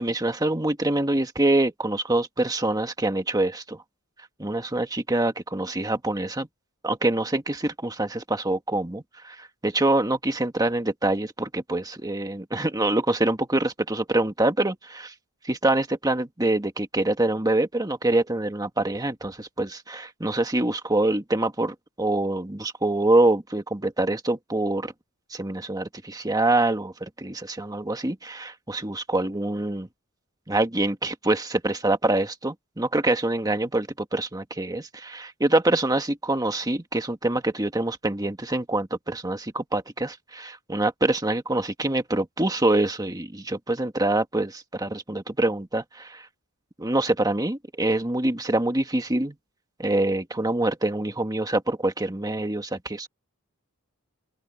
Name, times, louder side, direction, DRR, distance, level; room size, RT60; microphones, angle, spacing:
voice 1, 0.0-3.8 4.4-6.5 6.8-15.1 15.4-24.9 25.3-29.9 30.5-46.3 46.8-49.3 49.8-53.1, right 2 dB, 15° right, 1.7 m, -25 dB
open air
head